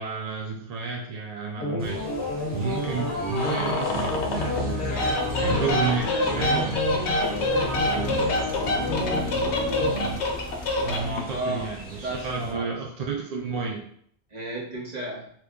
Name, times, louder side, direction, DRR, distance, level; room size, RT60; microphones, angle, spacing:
voice 1, 0.0-2.1 2.5-5.0 5.4-6.7 10.8-13.9, right 5 dB, 60° right, 0 dB, 0.4 m, -31 dB
sound 1, 1.6-10.1, left 2 dB, 55° left, 1.0 m, -30 dB
sound 2, 1.8-12.5, left 1 dB, 10° right, 0.7 m, -36 dB
sound 3, 3.3-4.7 4.9-11.4, left 1 dB, 85° left, 0.9 m, -27 dB
voice 2, 8.8-9.3 11.3-11.8 12.0-12.7 14.3-15.3, right 2 dB, 40° right, -5 dB, 1.1 m, -34 dB
2.9 x 2.2 x 3.6 m, 0.64 s
omnidirectional pair, 1.1 m